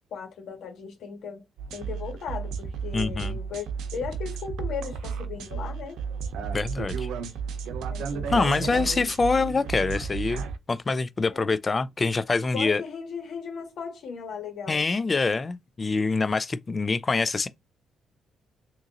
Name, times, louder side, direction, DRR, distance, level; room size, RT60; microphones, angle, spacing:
voice 1, 0.1-1.4 1.7-6.0 7.9-8.9 11.3-11.6 12.5-14.8, left 6 dB, 70° left, 1.6 m, -37 dB
sound 1, 1.6-10.6, right 6 dB, 85° right, 0.6 m, -33 dB
voice 2, 2.9-3.4 6.5-7.1 8.3-12.8 14.7-17.5, left 4 dB, 30° left, 0.3 m, -25 dB
3.7 x 2.9 x 2.5 m
cardioid pair, 90°, 0 cm